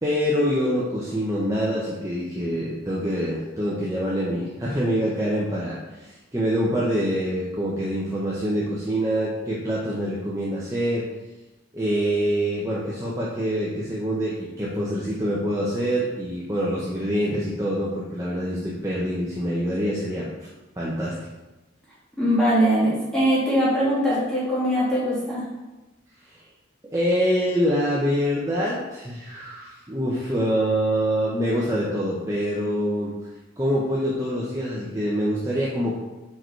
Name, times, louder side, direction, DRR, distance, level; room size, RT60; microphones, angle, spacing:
voice 1, 0.0-11.1 11.7-20.3 20.8-21.2 26.2-26.4 26.9-33.1 33.6-35.9, equal, 15° right, -6 dB, 0.7 m, -25 dB
voice 2, 22.2-25.4, equal, 5° left, -9 dB, 2.1 m, -21 dB
4.7 x 4.7 x 4.5 m, 1.1 s
head